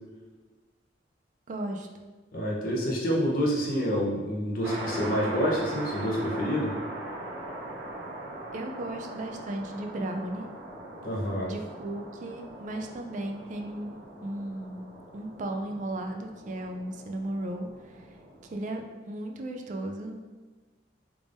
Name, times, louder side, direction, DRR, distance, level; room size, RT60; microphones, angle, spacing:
voice 1, 1.5-1.9 8.5-10.5 11.4-14.9 15.1-17.7 17.9-18.0 18.5-20.2, right 1 dB, 45° right, 3 dB, 0.3 m, -35 dB
voice 2, 2.3-6.7 11.0-11.5, equal, 50° left, -3 dB, 0.8 m, -28 dB
sound 1, 4.6-18.6, right 1 dB, 85° right, 0.7 m, -41 dB
3.5 x 3.4 x 2.5 m, 1.3 s
head